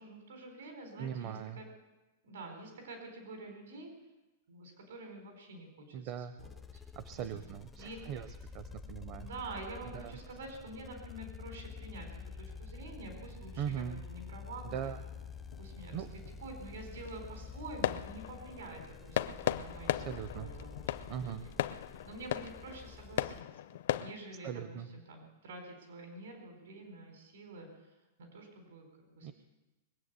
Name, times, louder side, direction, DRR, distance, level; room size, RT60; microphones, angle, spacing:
voice 1, 0.0-1.7 2.2-3.9 4.5-6.5 7.1-7.4 7.8-8.2 9.1-14.9 15.6-20.1 20.3-21.5 22.1-23.8 24.0-27.7 28.2-29.3, right 2 dB, 80° right, 3 dB, 4.2 m, -48 dB
voice 2, 1.0-1.6 5.9-6.4 7.0-8.3 8.5-9.3 9.9-10.2 13.6-14.0 14.6-15.0 15.9-16.1 19.9-20.5 21.1-21.4 24.4-24.9 29.2-29.3, right 9 dB, 35° right, 11 dB, 0.6 m, -40 dB
sound 1, 6.4-23.4, left 5 dB, 10° left, 0.4 m, -48 dB
sound 2, 14.1-24.1, left 12 dB, 60° left, 0.6 m, -38 dB
21.5 x 8.2 x 8.1 m, 1.0 s
supercardioid pair, 175°, 0 cm